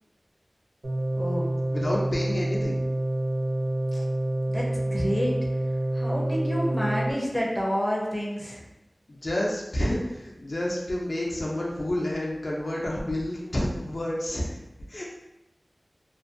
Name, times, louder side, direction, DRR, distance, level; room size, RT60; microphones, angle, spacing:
sound 1, 0.8-7.1, right 1 dB, 85° right, 0.6 m, -27 dB
voice 1, 1.2-1.5 3.9-4.0 4.5-5.3 5.9-8.6, equal, 5° left, -4 dB, 0.6 m, -29 dB
voice 2, 1.7-2.8 9.2-14.5 14.9-15.0, left 1 dB, 55° left, -3 dB, 0.4 m, -29 dB
2.5 x 2.1 x 2.5 m, 0.92 s
wide cardioid pair, 65°, 0 cm